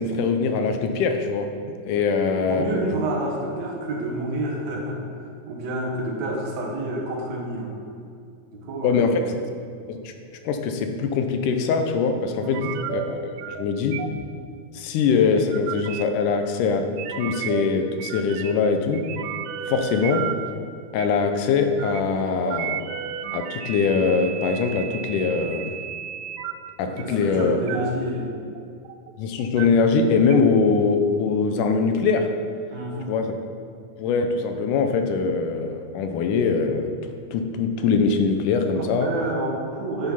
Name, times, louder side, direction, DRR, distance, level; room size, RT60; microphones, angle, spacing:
voice 1, 0.0-1.5 1.8-2.9 8.8-9.4 9.9-10.1 10.4-14.0 14.7-19.1 19.7-20.3 20.9-22.9 23.3-25.7 26.8-27.6 29.2-32.3 33.1-33.4 34.0-37.0 37.3-39.1, left 5 dB, 80° left, 6 dB, 2.2 m, -22 dB
voice 2, 2.4-5.0 5.5-7.7 8.5-9.2 12.4-12.8 26.8-28.3 32.7-33.1 38.8-40.1, right 1 dB, 60° right, -2 dB, 2.6 m, -29 dB
sound 1, 12.5-13.1 13.4-13.6 13.9-14.3 15.2-16.0 17.0-17.6 18.0-18.7 18.9-20.3 21.0-21.1 21.7-22.0 22.5-26.5 27.0-27.2 27.7-28.0 28.3-29.1 29.4-29.7 30.3-30.4, right 10 dB, 80° right, 1.7 m, -33 dB
10.5 x 5.9 x 5.5 m, 2.4 s
omnidirectional pair, 3.7 m